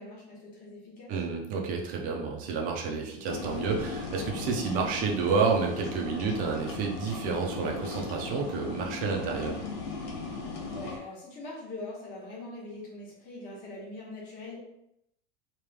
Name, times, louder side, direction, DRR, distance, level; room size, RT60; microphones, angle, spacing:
voice 1, 0.0-1.1 10.7-14.6, left 2 dB, 25° left, -4 dB, 1.2 m, -42 dB
voice 2, 1.1-9.6, right 5 dB, 30° right, 1 dB, 0.5 m, -30 dB
sound 1, 3.3-11.0, left 3 dB, 85° left, 1.1 m, -37 dB
3.2 x 2.9 x 3.4 m, 0.80 s
supercardioid pair, 170°, 30 cm